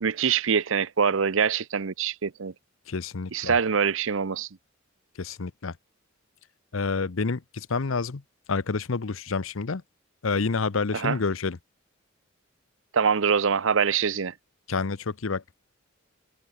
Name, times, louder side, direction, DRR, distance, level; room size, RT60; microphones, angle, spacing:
voice 1, 0.0-2.5 3.3-4.5 11.0-11.2 12.9-14.3, right 6 dB, 65° right, 0.7 m, -24 dB
voice 2, 2.9-3.6 5.2-5.8 6.7-8.2 8.5-9.8 10.2-11.6 14.7-15.4, left 4 dB, 70° left, 0.8 m, -28 dB
head